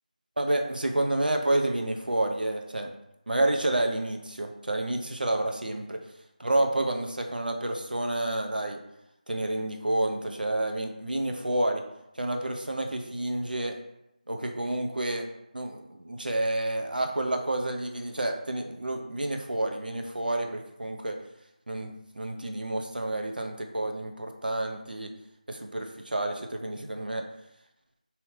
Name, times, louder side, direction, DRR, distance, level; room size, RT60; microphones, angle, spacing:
voice 1, 0.4-2.9 3.3-6.0 6.4-8.8 9.3-11.8 12.2-13.7 14.3-15.3 15.5-21.1 21.7-25.1 25.5-27.2, right 1 dB, 85° right, 3 dB, 0.5 m, -29 dB
2.8 x 2.5 x 3.1 m, 0.85 s
figure-of-eight pair, 170°, 5 cm